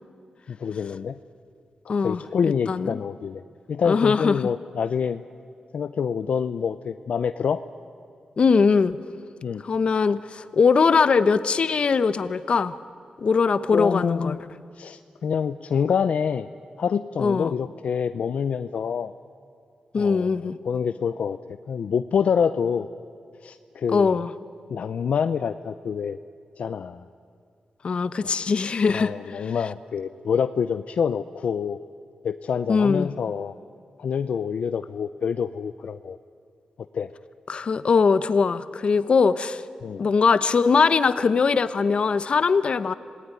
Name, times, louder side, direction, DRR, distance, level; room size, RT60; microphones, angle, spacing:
voice 1, 0.5-1.2 2.0-3.4 3.7-5.2 5.7-7.6 9.4-9.6 13.7-14.4 14.8-16.5 16.8-19.1 20.0-21.4 21.7-22.9 23.4-24.2 24.7-26.2 26.6-27.0 28.2-28.3 28.9-31.8 32.2-33.5 34.0-36.2 36.9-37.1 39.8-40.0, left 7 dB, 65° left, 11 dB, 0.6 m, -26 dB
voice 2, 1.9-2.2 2.7-3.0 3.8-4.4 8.4-9.0 9.6-12.7 13.2-14.4 17.2-17.5 19.9-20.6 23.9-24.3 27.8-29.4 32.7-33.1 37.5-39.6 40.0-42.9, left 5 dB, 50° left, 13 dB, 1.0 m, -21 dB
27.0 x 19.0 x 9.8 m, 2.3 s
wide cardioid pair, 125°, 2 cm